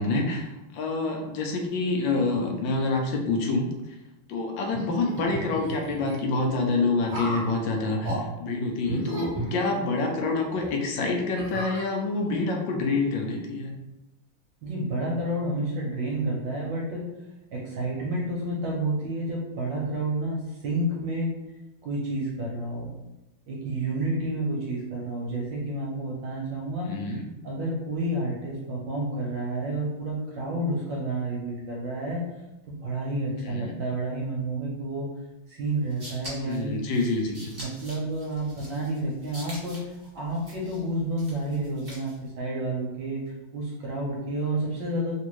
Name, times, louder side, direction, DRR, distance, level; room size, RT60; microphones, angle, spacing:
voice 1, 0.0-4.0 4.3-13.7 26.9-27.3 33.4-33.8 36.4-37.5, left 3 dB, 75° left, 2 dB, 1.2 m, -27 dB
sound 1, 4.7-6.2 7.1-7.5 8.0-8.2 8.8-10.1 10.6-10.7 11.4-12.3, right 1 dB, 45° right, 0.9 m, -34 dB
voice 2, 14.6-17.0 17.5-21.4 21.8-22.9 23.5-26.9 27.4-32.3 32.7-35.1 35.5-36.8 37.6-43.2 43.5-45.1, right 1 dB, 70° right, -3 dB, 1.3 m, -30 dB
sound 2, 35.7-42.3, equal, 20° right, 0.6 m, -45 dB
3.4 x 2.5 x 3.0 m, 0.97 s
omnidirectional pair, 2.3 m